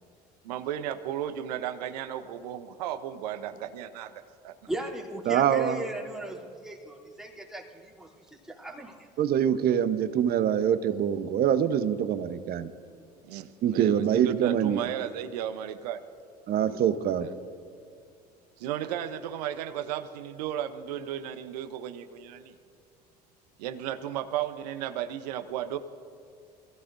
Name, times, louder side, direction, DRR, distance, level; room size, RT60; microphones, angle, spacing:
voice 1, 0.4-4.1 4.4-4.5 13.3-16.0 16.6-16.8 18.6-22.5 23.6-25.8, right 10 dB, 75° right, 10 dB, 0.8 m, -34 dB
voice 2, 4.7-9.1, right 1 dB, ahead, -3 dB, 3.1 m, -37 dB
voice 3, 5.3-5.8 9.2-12.7 13.6-14.8 16.5-17.3, right 9 dB, 50° right, 11 dB, 1.0 m, -24 dB
25.5 x 15.5 x 2.7 m, 2.4 s
hypercardioid pair, 65°, 20 cm